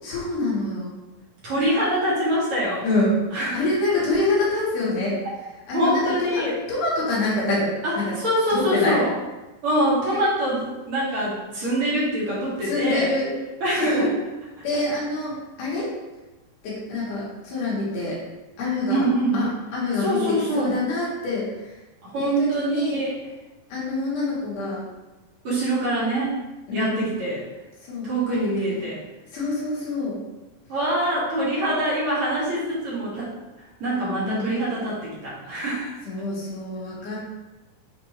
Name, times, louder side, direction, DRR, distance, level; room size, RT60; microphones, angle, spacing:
voice 1, 0.0-0.9 2.8-3.2 3.5-5.2 5.7-8.1 8.5-9.0 10.0-10.2 12.6-13.3 13.7-14.0 14.6-15.9 16.6-18.2 18.6-19.0 19.3-21.8 22.2-23.0 23.7-24.8 26.7-27.0 27.8-28.1 29.3-30.2 34.2-34.6 36.1-37.2, left 2 dB, 70° left, -7 dB, 2.8 m, -26 dB
voice 2, 1.4-2.8 3.3-3.6 5.7-6.6 7.8-9.1 9.6-13.1 13.6-14.1 14.7-14.8 18.9-19.5 20.0-20.7 22.0-23.1 25.4-26.4 26.7-27.4 28.0-29.0 30.7-33.3 33.8-36.0, right 1 dB, 55° right, -8 dB, 1.6 m, -24 dB
6.7 x 2.6 x 3.0 m, 1.1 s
omnidirectional pair, 4.1 m